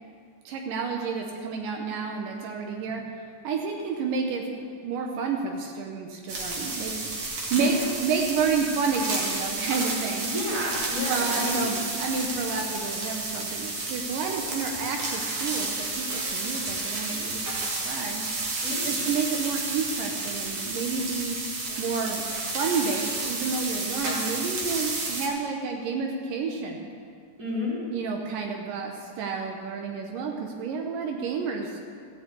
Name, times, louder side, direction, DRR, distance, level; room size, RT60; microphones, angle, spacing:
voice 1, 0.5-3.0 3.4-6.9 7.3-10.3 11.1-18.2 18.9-21.4 21.8-22.2 22.5-26.9 27.9-31.7, right 5 dB, 85° right, 2 dB, 2.6 m, -30 dB
sound 1, 6.3-25.3, right 3 dB, 55° right, 2.5 m, -31 dB
voice 2, 10.2-11.8 18.6-19.1 27.4-27.8, left 1 dB, 25° right, -8 dB, 4.0 m, -31 dB
14.0 x 6.3 x 8.2 m, 2.2 s
omnidirectional pair, 3.8 m